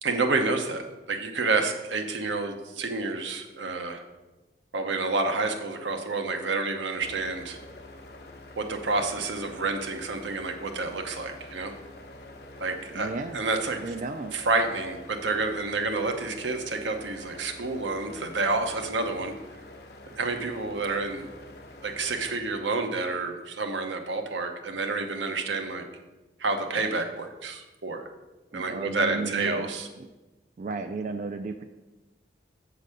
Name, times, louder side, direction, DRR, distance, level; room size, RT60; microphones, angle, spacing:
voice 1, 0.0-4.0 4.7-7.6 8.6-11.8 12.6-13.8 14.3-19.3 20.1-21.3 21.8-25.9 26.4-28.1 28.5-29.9, right 3 dB, 90° right, 5 dB, 0.9 m, -29 dB
sound 1, 7.0-22.4, left 1 dB, 60° left, 0.8 m, -46 dB
voice 2, 12.9-13.4 13.8-14.3 28.5-29.7 30.0-30.1 30.6-31.6, right 3 dB, 45° right, 7 dB, 0.3 m, -33 dB
7.3 x 4.0 x 6.5 m, 1.1 s
head